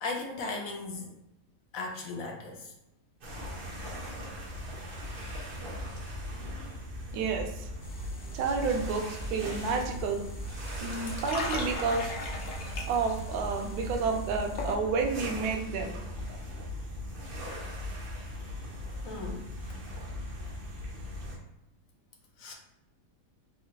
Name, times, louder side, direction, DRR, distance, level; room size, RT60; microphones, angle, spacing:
voice 1, 0.0-1.1 1.7-2.7 19.0-19.5 22.4-22.5, left 3 dB, 70° left, 1 dB, 0.8 m, -36 dB
sound 1, 3.2-21.4, left 1 dB, 55° right, 0.6 m, -39 dB
voice 2, 7.1-7.7 8.3-10.2 10.8-12.1 12.9-16.0, right 4 dB, 70° right, 2 dB, 1.0 m, -30 dB
sound 2, 7.8-14.8, equal, 90° left, 1.2 m, -39 dB
3.6 x 2.1 x 2.8 m, 0.88 s
omnidirectional pair, 1.8 m